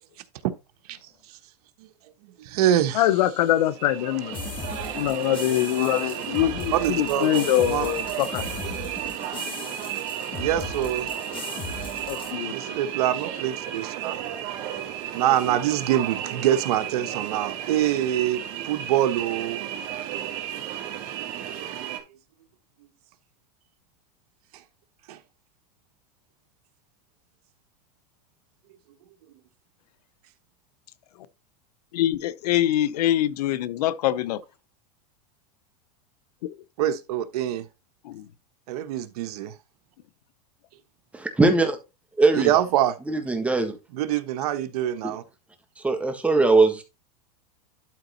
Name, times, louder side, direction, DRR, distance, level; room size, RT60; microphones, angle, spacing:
voice 1, 2.4-3.0 6.7-7.9 10.4-11.1 12.0-12.1 12.5-14.2 15.1-19.6 25.1-25.2 36.8-37.7 38.7-39.5 42.3-43.0 43.9-45.2, right 11 dB, 75° right, 1.2 m, -25 dB
voice 2, 2.9-4.4 4.9-8.4 12.1-12.6 31.9-34.4 38.0-38.3, left 13 dB, 80° left, 0.8 m, -24 dB
sound 1, 3.4-22.0, right 10 dB, 50° right, 2.8 m, -33 dB
sound 2, 4.3-12.3, left 5 dB, 25° left, 1.6 m, -38 dB
voice 3, 41.1-41.8 42.2-42.5 43.1-43.8 45.0-45.1 45.8-46.8, right 3 dB, 5° right, 1.6 m, -20 dB
12.0 x 4.0 x 4.1 m
supercardioid pair, 135°, 20 cm